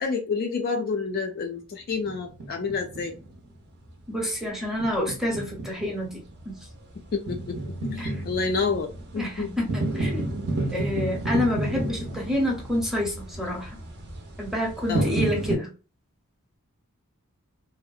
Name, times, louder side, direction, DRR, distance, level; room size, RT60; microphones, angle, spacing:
voice 1, 0.0-3.1 7.1-9.6 14.9-15.1, left 4 dB, 40° left, 0.3 m, -29 dB
sound 1, 2.1-3.5 3.9-4.0 4.8-15.5, right 2 dB, 50° right, 0.5 m, -31 dB
voice 2, 4.1-6.5 8.0-8.1 9.2-10.4 10.7-13.7 14.4-15.7, left 1 dB, ahead, 0.6 m, -28 dB
2.6 x 2.0 x 2.3 m
head